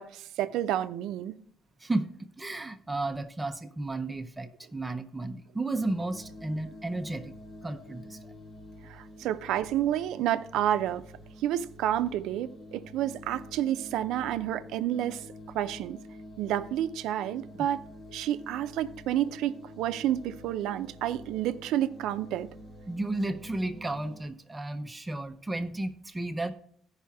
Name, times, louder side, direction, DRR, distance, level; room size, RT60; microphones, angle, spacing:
voice 1, 0.0-1.3 8.9-11.0 11.4-15.2 15.5-16.0 16.4-17.8 18.1-22.5, right 11 dB, 80° right, 0.5 m, -30 dB
voice 2, 1.8-7.3 7.6-8.3 22.9-26.5, right 2 dB, 10° right, 0.5 m, -33 dB
sound 1, 5.7-24.2, left 1 dB, 45° left, 1.1 m, -48 dB
14.5 x 5.6 x 3.4 m
cardioid pair, 145°, 0 cm